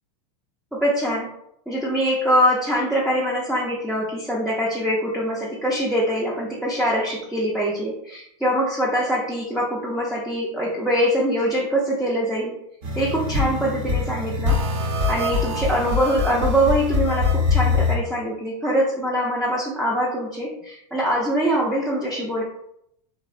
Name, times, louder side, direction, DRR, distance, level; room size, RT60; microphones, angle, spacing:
voice 1, 0.7-1.3 1.7-12.5 13.0-14.6 15.1-22.4, equal, ahead, -5 dB, 0.4 m, -23 dB
sound 1, 12.8-18.0, left 4 dB, 60° right, 0.8 m, -23 dB
2.6 x 2.0 x 2.4 m, 0.76 s
hypercardioid pair, 115°, 20 cm